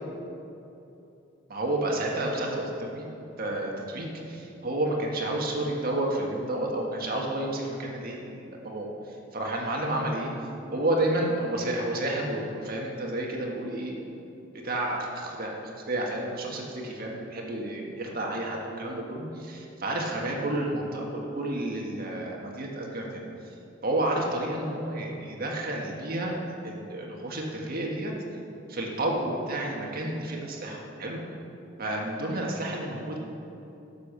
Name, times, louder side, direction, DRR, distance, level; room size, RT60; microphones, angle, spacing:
voice 1, 1.5-3.1 3.4-10.3 10.7-14.2 14.6-23.2 23.8-28.1 28.7-31.2 31.8-33.2, right 1 dB, 50° right, -1 dB, 1.7 m, -31 dB
11.0 x 7.1 x 6.8 m, 2.9 s
head